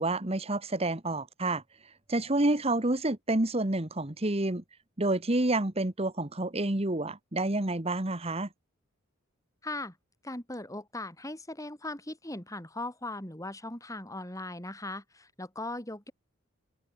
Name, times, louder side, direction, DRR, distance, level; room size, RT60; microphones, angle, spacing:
voice 1, 0.0-1.6 2.1-4.6 5.0-8.5, right 2 dB, 30° right, 1.5 m, -29 dB
voice 2, 9.6-9.9 10.2-16.1, left 2 dB, 15° left, 5.7 m, -39 dB
head